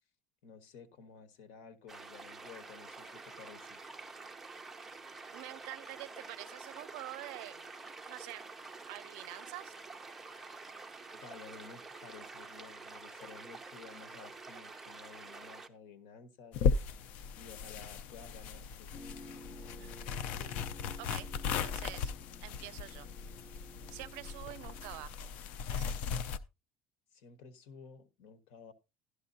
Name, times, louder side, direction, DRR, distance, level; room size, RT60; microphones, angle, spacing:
voice 1, 0.4-3.8 11.1-16.9 17.4-18.9 27.1-28.7, left 5 dB, 80° left, 1.3 m, -53 dB
sound 1, 1.9-15.7, right 3 dB, 10° right, 0.7 m, -48 dB
voice 2, 5.3-7.7 8.1-8.5 8.9-9.8 19.8-20.7 21.0-22.1 22.4-23.1 23.9-25.3 25.7-26.0, right 19 dB, 85° right, 0.4 m, -47 dB
sound 2, 16.5-26.4, left 6 dB, 60° left, 0.5 m, -37 dB
sound 3, 18.9-25.0, left 1 dB, 30° left, 3.7 m, -53 dB
12.0 x 11.5 x 2.7 m
cardioid pair, 160°, 3 cm